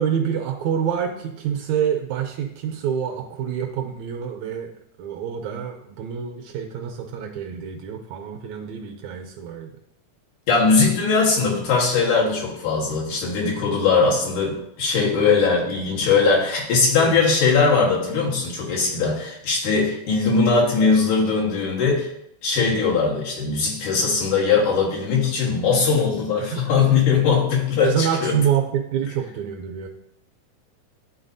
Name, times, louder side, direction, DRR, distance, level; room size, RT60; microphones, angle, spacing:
voice 1, 0.0-4.7 5.0-9.7 16.9-17.1 22.6-22.9 26.5-26.6 27.8-29.9, right 8 dB, 75° right, 3 dB, 1.8 m, -27 dB
voice 2, 10.5-22.1 22.4-28.4, left 4 dB, 80° left, -3 dB, 2.9 m, -20 dB
11.0 x 4.1 x 2.6 m, 0.74 s
omnidirectional pair, 3.6 m